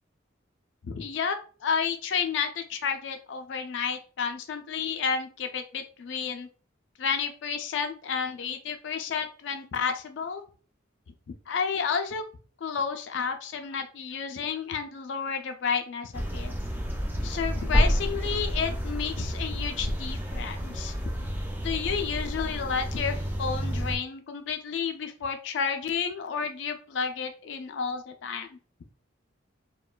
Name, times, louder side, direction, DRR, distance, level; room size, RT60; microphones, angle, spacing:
voice 1, 0.8-1.4 1.6-6.5 7.0-10.4 11.5-12.2 12.6-16.5 17.2-20.9 21.6-28.5, left 6 dB, 65° left, 6 dB, 0.4 m, -31 dB
sound 1, 16.1-24.0, equal, 10° right, 0.3 m, -29 dB
2.9 x 2.2 x 2.3 m, 0.39 s
head